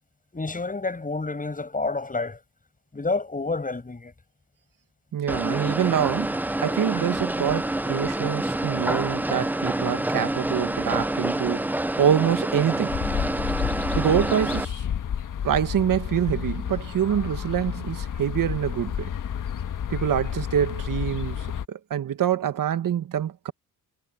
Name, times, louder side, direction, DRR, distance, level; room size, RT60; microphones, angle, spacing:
voice 1, 0.3-2.4 2.9-4.1 5.3-5.4 6.9-7.0, left 3 dB, 20° left, 7.4 m, -29 dB
voice 2, 5.1-6.4 6.6-13.0 14.0-14.8 15.4-19.1 19.9-23.5, right 9 dB, 60° right, 1.8 m, -25 dB
sound 1, 5.3-14.6, right 1 dB, 5° right, 0.5 m, -27 dB
sound 2, 12.9-21.7, left 8 dB, 55° left, 1.6 m, -31 dB
cardioid pair, 85°, 38 cm